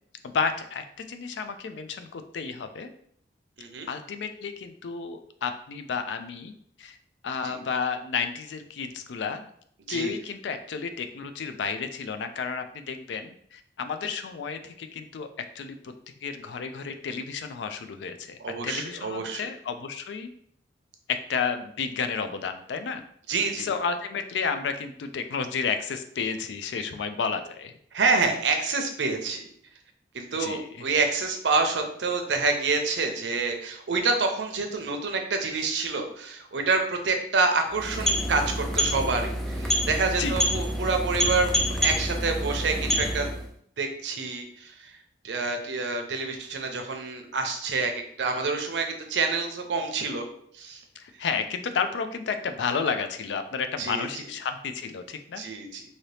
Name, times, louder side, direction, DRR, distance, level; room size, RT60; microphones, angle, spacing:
voice 1, 0.2-2.9 3.9-6.5 6.8-7.0 7.2-9.5 9.9-15.3 15.5-15.9 16.2-18.4 18.6-20.3 21.1-23.0 23.6-27.7 30.4-30.8 40.2-40.4 51.0-55.4, left 5 dB, 80° left, 8 dB, 0.4 m, -31 dB
voice 2, 3.6-3.9 7.4-7.6 9.9-10.1 18.4-19.4 23.3-23.7 27.9-29.5 30.1-43.4 43.8-45.0 45.2-50.3 50.5-50.8 53.8-54.1 55.4-55.8, right 4 dB, 85° right, 5 dB, 0.6 m, -27 dB
sound 1, 37.7-43.5, equal, ahead, 0.4 m, -27 dB
2.8 x 2.7 x 3.2 m, 0.65 s
head